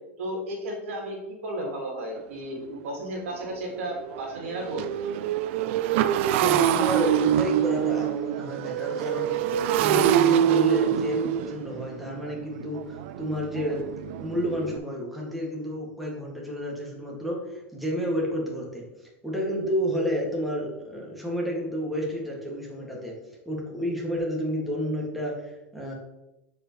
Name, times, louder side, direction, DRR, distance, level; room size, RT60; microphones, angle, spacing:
voice 1, 0.2-4.8, right 1 dB, 85° right, 1 dB, 2.0 m, -33 dB
Motorcycle, 2.2-2.3 2.7-2.9 3.2-14.8, right 10 dB, 65° right, 0.4 m, -25 dB
voice 2, 6.4-13.9 14.2-18.8 19.2-23.2 23.5-25.9, equal, ahead, -4 dB, 2.1 m, -30 dB
8.5 x 4.9 x 3.2 m, 0.95 s
supercardioid pair, 115°, 7 cm